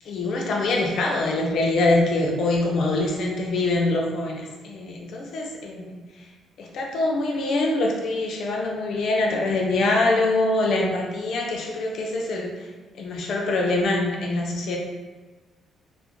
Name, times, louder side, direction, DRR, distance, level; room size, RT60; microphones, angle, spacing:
voice 1, 0.1-6.0 6.6-12.5 13.0-14.8, left 2 dB, 70° left, 0 dB, 0.5 m, -24 dB
2.4 x 2.1 x 3.0 m, 1.3 s
cardioid pair, 90°, 0 cm